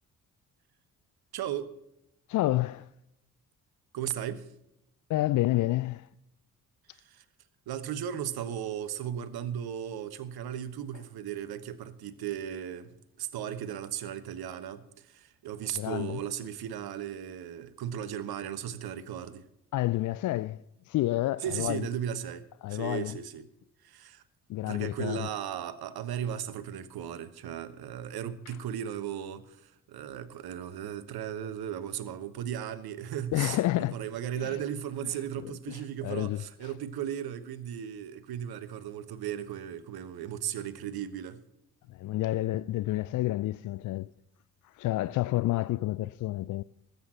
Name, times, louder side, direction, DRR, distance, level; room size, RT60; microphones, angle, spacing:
voice 1, 1.3-1.7 3.9-4.5 6.9-7.2 7.7-12.9 13.2-19.4 21.4-22.4 22.7-23.5 23.8-24.2 24.6-41.4, right 9 dB, 50° right, 1.2 m, -36 dB
voice 2, 2.3-2.9 5.1-6.1 15.8-16.2 19.7-21.8 22.6-23.2 24.5-25.3 33.3-34.0 34.4-34.6 35.7-35.8 36.0-36.4 41.9-44.1 44.6-46.6, left 16 dB, 45° left, 0.5 m, -29 dB
20.0 x 8.1 x 4.3 m
figure-of-eight pair, 40°, 46 cm